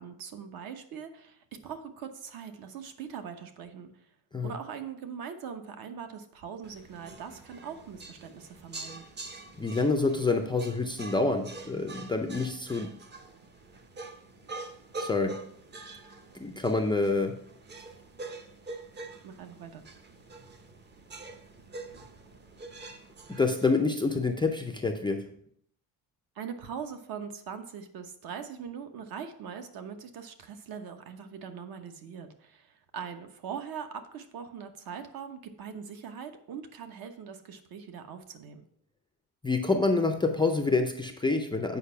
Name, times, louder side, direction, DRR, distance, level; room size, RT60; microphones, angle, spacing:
voice 1, 0.0-4.1 4.4-9.1 19.2-19.8 26.3-38.6, right 7 dB, 60° right, 8 dB, 1.1 m, -41 dB
sound 1, 6.6-23.8, right 2 dB, 25° right, 0.7 m, -45 dB
voice 2, 9.6-12.9 15.0-15.3 16.3-17.3 23.4-25.2 39.4-41.8, left 3 dB, 10° left, 4 dB, 0.4 m, -27 dB
8.4 x 5.2 x 5.7 m, 0.67 s
cardioid pair, 180°, 42 cm